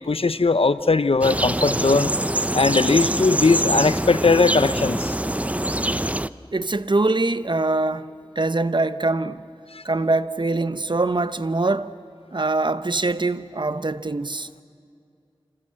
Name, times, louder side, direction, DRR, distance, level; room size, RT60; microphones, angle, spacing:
voice 1, 0.0-2.1 2.5-5.1 9.7-9.8, left 3 dB, 85° left, 0.8 m, -19 dB
sound 1, 1.2-6.3, right 1 dB, 15° right, 0.6 m, -24 dB
voice 2, 6.5-8.1 8.4-9.4 9.8-11.9 12.3-14.5, right 2 dB, 55° right, 0.9 m, -23 dB
27.5 x 27.0 x 7.6 m
wide cardioid pair, 50°, 9 cm